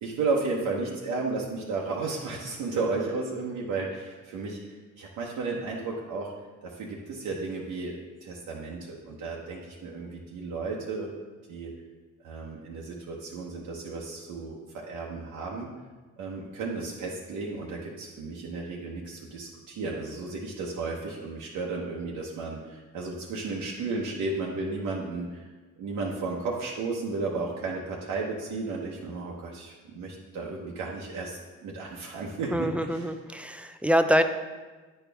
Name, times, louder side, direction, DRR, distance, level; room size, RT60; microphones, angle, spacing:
voice 1, 0.0-4.6 5.0-6.3 6.6-11.1 11.5-11.7 12.2-15.7 16.2-25.4 25.8-33.1, right 3 dB, 80° right, -3 dB, 0.9 m, -33 dB
voice 2, 32.5-34.2, equal, 5° right, 8 dB, 0.4 m, -25 dB
9.6 x 4.4 x 3.4 m, 1.3 s
cardioid pair, 90°, 30 cm